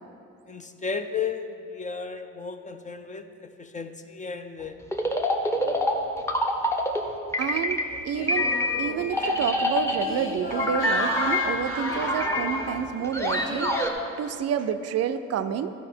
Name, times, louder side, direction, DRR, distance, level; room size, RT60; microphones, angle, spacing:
voice 1, 0.5-4.8 5.5-6.2, left 5 dB, 25° left, 8 dB, 0.4 m, -34 dB
sound 1, 4.9-7.0 7.3-8.0 8.3-10.1 10.5-13.9, left 1 dB, 10° left, 0.8 m, -26 dB
voice 2, 7.4-8.5 8.8-13.7 14.2-15.7, right 8 dB, 55° right, 10 dB, 0.4 m, -29 dB
sound 2, 8.1-13.9, left 1 dB, 45° left, 1.3 m, -34 dB
11.5 x 5.0 x 4.4 m, 2.6 s
cardioid pair, 90°, 30 cm